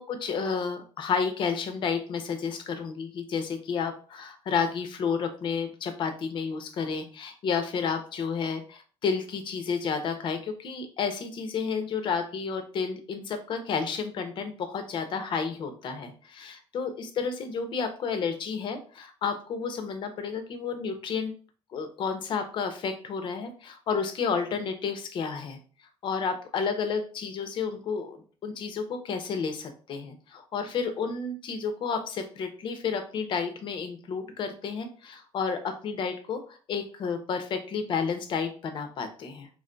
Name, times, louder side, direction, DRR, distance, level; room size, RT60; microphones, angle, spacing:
voice 1, 0.0-21.3 21.7-25.6 26.0-36.4 36.7-39.5, left 5 dB, 45° left, 8 dB, 0.6 m, -31 dB
3.8 x 3.4 x 2.2 m, 0.40 s
cardioid pair, 165°, 12 cm